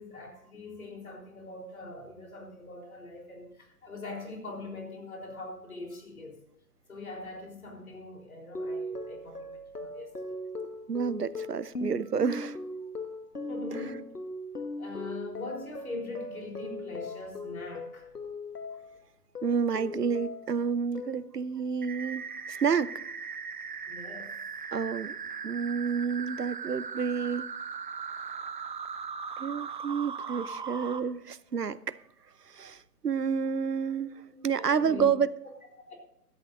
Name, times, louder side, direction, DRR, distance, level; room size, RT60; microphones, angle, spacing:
voice 1, 0.0-6.4 6.9-10.1 13.3-14.1 14.8-18.1 23.9-24.4 33.9-35.1 35.9-36.0, left 2 dB, 65° left, 1 dB, 3.9 m, -42 dB
sound 1, 8.6-19.0 19.4-20.6 21.0-21.5, left 2 dB, 80° left, 1.4 m, -39 dB
voice 2, 10.9-12.6 19.4-22.9 24.7-25.2 25.4-27.5 29.4-32.0 32.5-35.3, right 6 dB, 80° right, 18 dB, 0.8 m, -29 dB
sound 2, 21.8-31.0, right 6 dB, 30° right, 0.7 m, -39 dB
16.5 x 13.0 x 2.6 m, 0.76 s
figure-of-eight pair, 135°, 46 cm